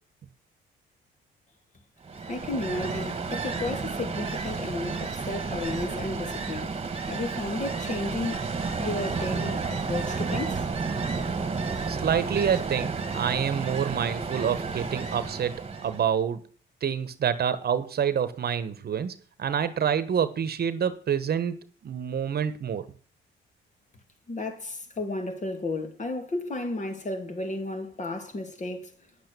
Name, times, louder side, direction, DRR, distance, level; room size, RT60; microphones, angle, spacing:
Ocean, 2.0-16.1, right 4 dB, 30° right, 1.7 m, -31 dB
voice 1, 2.3-8.5 8.8-10.7 24.3-28.9, left 2 dB, 35° left, 2.8 m, -33 dB
voice 2, 11.9-15.6 15.8-16.4 16.8-21.6 21.8-22.9, right 8 dB, 50° right, 1.2 m, -27 dB
10.0 x 8.1 x 6.8 m
cardioid pair, 90°, 20 cm